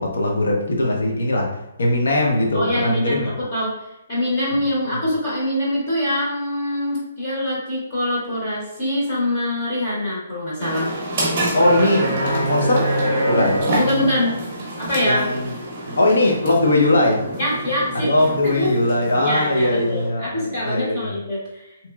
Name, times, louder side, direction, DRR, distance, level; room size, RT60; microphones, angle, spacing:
voice 1, 0.0-1.5 1.8-3.3 4.5-4.6 11.5-12.9 13.3-13.6 15.0-15.5 16.0-17.2 17.9-21.1, left 1 dB, 90° left, 0 dB, 0.8 m, -20 dB
voice 2, 2.5-3.7 4.1-10.9 13.6-14.4 14.8-15.2 17.4-18.1 18.4-18.7 19.2-21.6, left 1 dB, 30° left, -6 dB, 0.7 m, -24 dB
sound 1, 10.6-20.1, right 1 dB, 25° right, 0.7 m, -26 dB
2.9 x 2.9 x 2.3 m, 0.87 s
hypercardioid pair, 180°, 0 cm